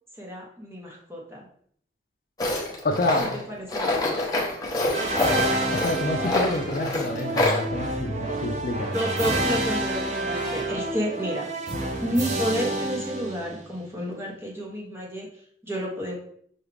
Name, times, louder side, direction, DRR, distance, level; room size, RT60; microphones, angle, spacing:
voice 1, 0.2-1.5 3.5-4.2 8.9-11.4 12.0-15.3 15.6-16.1, equal, 15° right, -3 dB, 0.9 m, -30 dB
Tools, 2.4-7.6, left 2 dB, 20° left, 0.7 m, -26 dB
voice 2, 2.8-3.3 5.7-8.9, left 2 dB, 50° left, 3 dB, 0.5 m, -27 dB
sound 1, 4.9-13.8, right 2 dB, 40° right, 0.5 m, -29 dB
6.0 x 2.4 x 3.3 m, 0.63 s
head